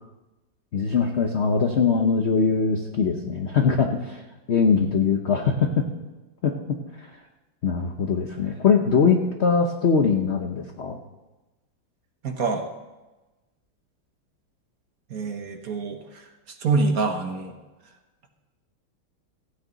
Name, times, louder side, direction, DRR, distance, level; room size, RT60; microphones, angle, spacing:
voice 1, 0.7-4.2 4.5-5.9 6.4-7.1 7.6-11.0, left 5 dB, 75° left, 4 dB, 0.6 m, -22 dB
voice 2, 12.2-12.6 15.1-16.2 16.6-17.5, right 4 dB, 50° right, 5 dB, 1.3 m, -26 dB
15.0 x 9.1 x 4.0 m, 1.1 s
omnidirectional pair, 2.3 m